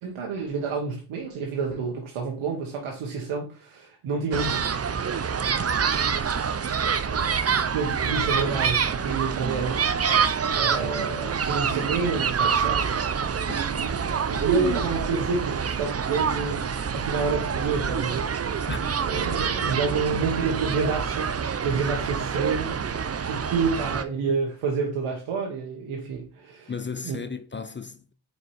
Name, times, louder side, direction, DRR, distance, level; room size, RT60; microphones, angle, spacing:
voice 1, 0.0-4.6 7.0-7.2 7.7-12.9 13.2-18.7 19.1-26.7 27.0-27.2, right 4 dB, 85° right, 1.4 m, -29 dB
sound 1, 4.3-24.0, right 6 dB, 30° right, 0.6 m, -26 dB
voice 2, 26.7-28.1, left 5 dB, 25° left, 0.5 m, -35 dB
4.7 x 4.5 x 4.4 m
cardioid pair, 60°, 49 cm